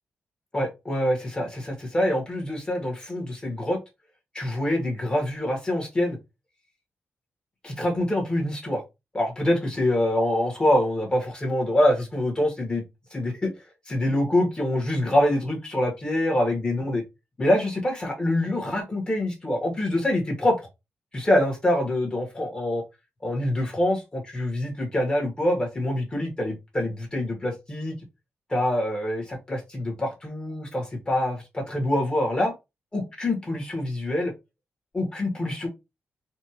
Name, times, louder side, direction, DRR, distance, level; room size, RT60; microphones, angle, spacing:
voice 1, 0.5-3.8 4.3-6.2 7.6-8.8 9.1-12.8 13.1-13.5 13.9-17.0 17.4-20.6 21.1-22.8 23.2-28.0 28.5-32.5 32.9-34.3 34.9-35.7, left 1 dB, 20° left, 1.8 m, -25 dB
4.3 x 2.7 x 3.1 m
wide cardioid pair, 120°, 4 cm